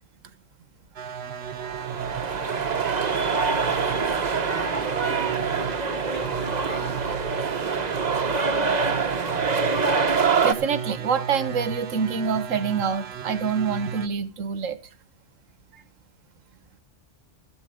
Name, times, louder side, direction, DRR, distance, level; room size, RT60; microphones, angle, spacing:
sound 1, 1.0-14.1, right 7 dB, 60° right, 1.1 m, -35 dB
sound 2, 1.6-10.5, right 5 dB, 35° right, 0.9 m, -25 dB
voice 1, 3.5-4.2 4.6-7.3, left 3 dB, 55° left, 2.0 m, -42 dB
voice 2, 10.4-14.8, right 6 dB, 90° right, 1.4 m, -26 dB
14.0 x 12.0 x 5.0 m
omnidirectional pair, 1.3 m